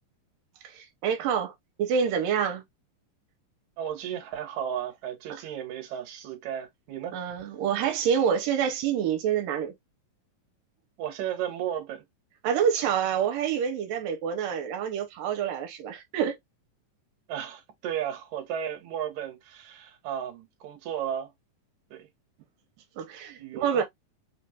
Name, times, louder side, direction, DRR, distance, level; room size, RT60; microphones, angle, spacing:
voice 1, 0.6-1.5 1.8-2.6 7.1-9.7 12.4-16.4 23.0-23.8, right 8 dB, 85° right, 2.3 m, -27 dB
voice 2, 3.8-7.2 11.0-12.0 17.3-21.3 21.9-22.1 23.4-23.8, right 9 dB, 70° right, 2.2 m, -34 dB
5.4 x 2.3 x 2.7 m
omnidirectional pair, 3.9 m